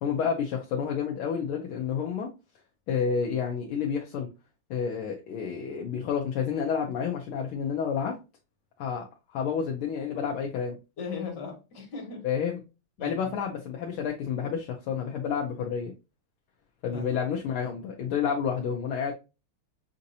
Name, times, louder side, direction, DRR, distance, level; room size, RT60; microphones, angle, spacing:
voice 1, 0.0-2.3 2.9-4.3 4.7-8.1 8.8-9.1 9.3-10.7 12.2-12.6 13.0-15.9 16.8-19.1, left 7 dB, 75° left, 1.6 m, -29 dB
voice 2, 11.0-12.3 13.0-13.3 16.9-17.2, left 4 dB, 55° left, 2.0 m, -38 dB
6.2 x 2.7 x 2.7 m
omnidirectional pair, 2.4 m